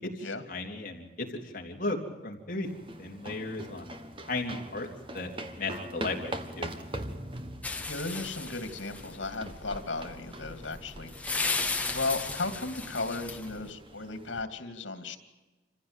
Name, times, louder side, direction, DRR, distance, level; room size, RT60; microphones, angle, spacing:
voice 1, 0.0-2.0 2.2-2.7 3.0-3.9 4.3-4.9 5.1-5.3 5.6-6.7, left 2 dB, 45° left, 1 dB, 3.4 m, -35 dB
sound 1, 2.6-14.4, right 1 dB, 25° right, 1.5 m, -43 dB
sound 2, 7.6-13.7, left 3 dB, 10° left, 1.6 m, -36 dB
voice 2, 7.9-11.1 11.5-15.2, left 3 dB, 80° left, 9 dB, 2.6 m, -35 dB
27.5 x 15.5 x 9.1 m, 1.2 s
head